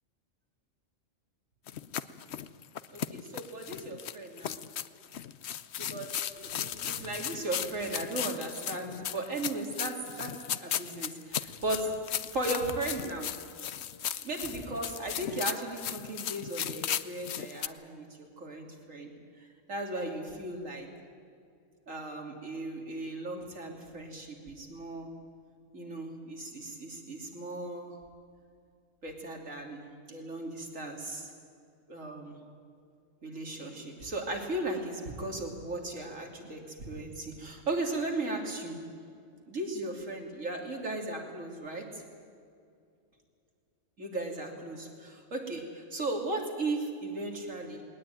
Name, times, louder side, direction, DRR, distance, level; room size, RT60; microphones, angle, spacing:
sound 1, 1.7-17.7, left 10 dB, 65° left, 0.9 m, -36 dB
voice 1, 2.9-4.6 5.8-13.4 14.2-19.1 19.7-20.9 21.9-25.1 25.7-28.0 29.0-31.3 31.9-32.4 33.2-38.9 39.5-42.0 44.0-47.8, right 2 dB, 85° right, 2 dB, 3.3 m, -36 dB
20.5 x 19.0 x 9.1 m, 2.4 s
omnidirectional pair, 1.3 m